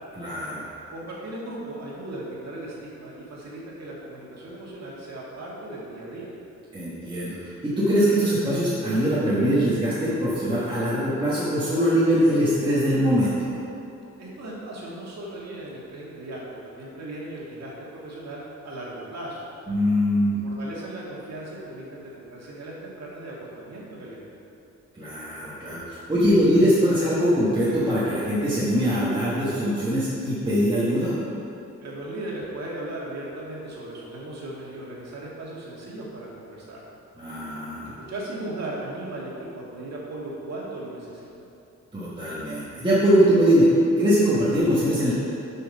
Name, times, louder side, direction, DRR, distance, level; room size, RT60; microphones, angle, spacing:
voice 1, 0.2-0.7 6.7-13.6 19.7-20.4 24.9-31.1 37.2-37.9 41.9-43.7 44.0-45.2, equal, 15° right, -10 dB, 1.2 m, -22 dB
voice 2, 0.9-6.3 14.2-19.5 20.4-24.2 31.8-36.8 38.1-41.3, right 1 dB, 65° right, -5 dB, 1.9 m, -37 dB
7.0 x 5.6 x 5.4 m, 2.8 s
wide cardioid pair, 165°, 29 cm